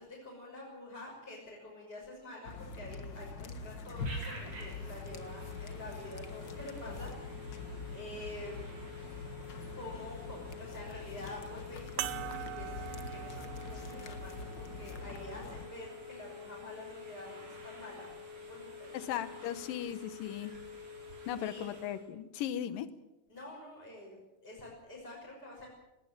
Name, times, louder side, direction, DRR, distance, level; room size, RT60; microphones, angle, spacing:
voice 1, 0.0-7.6 7.9-8.7 9.7-19.2 21.4-21.8 23.3-24.2 24.4-25.7, left 1 dB, 15° left, -5 dB, 6.2 m, -48 dB
sound 1, 2.4-15.7, left 3 dB, 45° left, 1.5 m, -44 dB
Telephone, 4.0-22.1, left 3 dB, 70° right, 6.7 m, -49 dB
sound 2, 12.0-16.8 17.6-17.7 19.8-19.9, right 13 dB, 85° right, 2.6 m, -44 dB
voice 2, 18.9-20.5 21.3-22.9, left 10 dB, 85° left, 14 dB, 2.9 m, -37 dB
19.5 x 18.5 x 9.0 m, 0.95 s
omnidirectional pair, 3.8 m